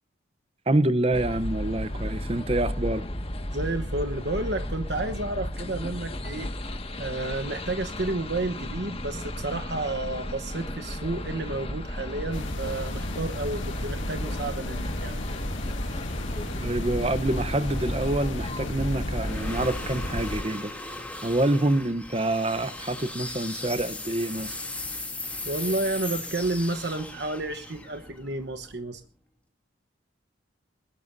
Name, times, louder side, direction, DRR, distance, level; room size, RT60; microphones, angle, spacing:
voice 1, 0.7-3.1 16.6-20.7 21.2-24.6, right 1 dB, 30° right, 0.8 m, -26 dB
sound 1, 1.1-19.7, left 1 dB, 30° left, 1.8 m, -34 dB
voice 2, 3.5-6.5 7.0-15.2 25.4-29.0, right 2 dB, 60° right, 1.1 m, -31 dB
sound 2, 12.3-20.4, left 1 dB, 90° left, 2.5 m, -33 dB
sound 3, 18.3-29.0, left 2 dB, 5° left, 2.7 m, -38 dB
22.0 x 20.0 x 2.7 m
head